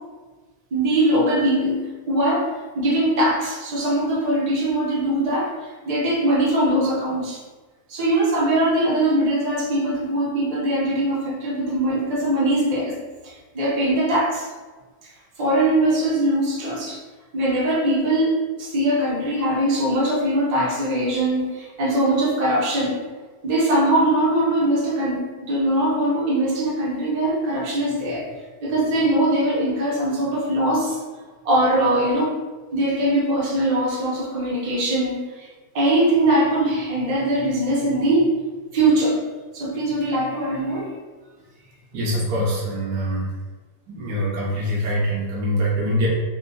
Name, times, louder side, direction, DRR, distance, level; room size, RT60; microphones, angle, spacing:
voice 1, 0.7-2.5 2.8-7.4 7.9-12.9 13.2-14.5 15.4-17.0 17.3-23.0 23.4-28.3 28.6-31.0 31.4-32.3 32.7-35.5 35.7-38.3 38.7-39.2 39.5-40.9, right 1 dB, 55° right, -4 dB, 0.4 m, -21 dB
voice 2, 41.9-43.3 43.9-46.1, equal, 90° right, -5 dB, 1.4 m, -24 dB
3.5 x 2.8 x 2.6 m, 1.3 s
omnidirectional pair, 1.8 m